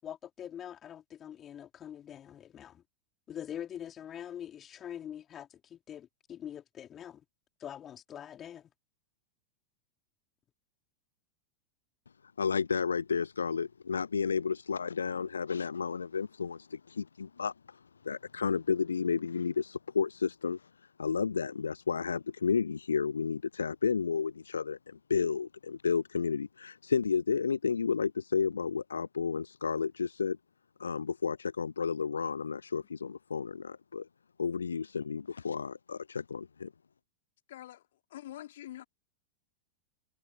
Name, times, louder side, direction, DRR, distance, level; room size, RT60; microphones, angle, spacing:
voice 1, 0.0-2.8 3.3-7.2 7.6-8.7, left 10 dB, 25° left, 3.3 m, -44 dB
voice 2, 12.4-20.7 21.0-30.4 30.8-34.1 34.4-36.7, left 5 dB, 75° left, 0.4 m, -32 dB
voice 3, 37.5-37.8 38.1-38.8, left 13 dB, 60° left, 3.9 m, -45 dB
figure-of-eight pair, 90°, 0 cm